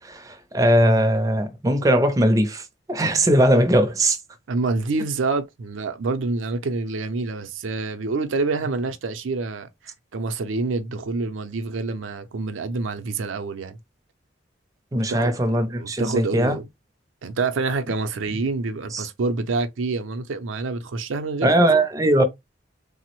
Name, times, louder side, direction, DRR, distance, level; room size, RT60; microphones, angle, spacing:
voice 1, 0.1-2.6 2.9-4.2 14.9-16.6 18.9-19.1 21.4-22.2, right 1 dB, 20° right, 0.4 m, -19 dB
voice 2, 4.5-13.8 14.9-15.4 15.7-16.7 17.2-21.7, right 3 dB, 85° right, 0.5 m, -27 dB
3.3 x 2.0 x 2.8 m
head